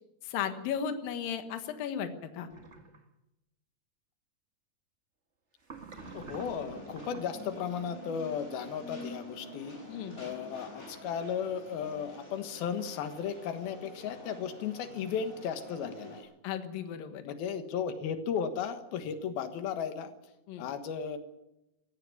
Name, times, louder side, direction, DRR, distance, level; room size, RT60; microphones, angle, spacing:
voice 1, 0.2-2.5 9.9-10.2 16.4-17.2 20.5-20.6, left 8 dB, 75° left, 8 dB, 3.1 m, -35 dB
sound 1, 2.5-3.0 5.6-7.4, right 4 dB, 30° right, 1.2 m, -48 dB
sound 2, 5.9-16.2, left 1 dB, 15° left, 7.7 m, -47 dB
voice 2, 6.1-9.8 10.2-16.3 17.2-20.1 20.6-21.2, left 7 dB, 90° left, 9 dB, 3.3 m, -35 dB
18.5 x 16.0 x 9.6 m, 0.91 s
omnidirectional pair, 4.2 m